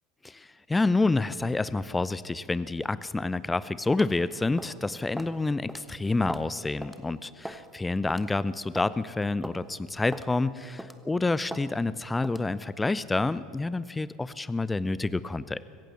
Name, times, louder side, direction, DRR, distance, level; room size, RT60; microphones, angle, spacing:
voice 1, 0.2-15.7, left 3 dB, 10° left, 17 dB, 0.6 m, -28 dB
sound 1, 4.0-4.2 4.6-4.8 5.2-5.4 5.7-5.8 6.3-6.5 6.8-7.0 7.4-7.7 8.1-8.2 8.7-8.9 9.4-9.6 10.1-10.3 10.8-11.0 11.5-11.7 12.2-12.5, right 1 dB, 5° right, 1.2 m, -39 dB
25.0 x 15.5 x 7.3 m, 2.5 s
figure-of-eight pair, 75°, 0 cm